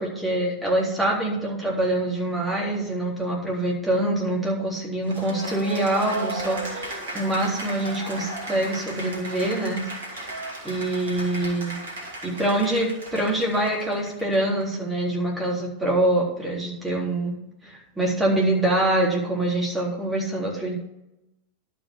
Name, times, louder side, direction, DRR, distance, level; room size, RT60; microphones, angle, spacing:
voice 1, 0.0-9.8 10.6-11.8 12.2-17.4 17.6-20.7, right 1 dB, 5° right, -4 dB, 3.7 m, -25 dB
Cheering / Applause, 5.1-14.6, right 2 dB, 65° right, 2.4 m, -35 dB
11.5 x 5.1 x 8.1 m, 0.89 s
figure-of-eight pair, 90°, 0 cm